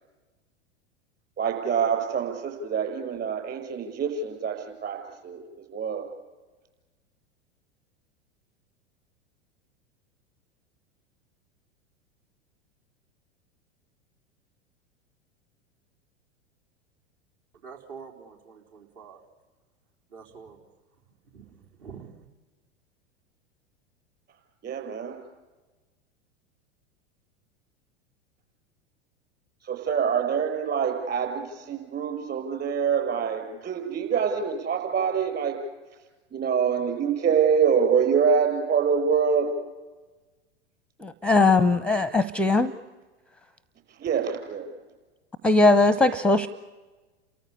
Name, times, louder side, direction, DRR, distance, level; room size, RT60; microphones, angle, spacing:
voice 1, 1.4-4.5 4.8-5.0 5.2-5.4 5.7-6.1 24.6-25.2 29.6-35.5 36.3-39.5 44.0-44.7, right 7 dB, 30° right, 3 dB, 6.7 m, -25 dB
voice 2, 17.6-19.2 20.1-20.6 21.3-22.1, right 6 dB, 55° right, 0 dB, 4.3 m, -46 dB
voice 3, 41.0-42.7 45.4-46.5, left 3 dB, 5° left, 16 dB, 0.7 m, -20 dB
30.0 x 14.5 x 10.0 m, 1.2 s
figure-of-eight pair, 90°, 33 cm